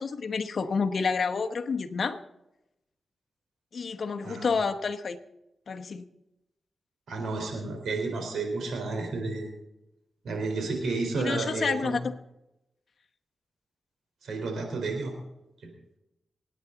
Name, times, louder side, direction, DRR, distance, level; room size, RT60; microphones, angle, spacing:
voice 1, 0.0-2.2 3.7-5.2 5.7-6.0 11.1-12.0, left 5 dB, 65° left, 6 dB, 1.1 m, -29 dB
voice 2, 4.2-4.6 7.1-9.5 10.2-12.0 14.2-15.1 15.6-15.7, right 3 dB, 90° right, 3 dB, 4.2 m, -31 dB
24.5 x 9.7 x 4.0 m, 0.91 s
cardioid pair, 70°, 0 cm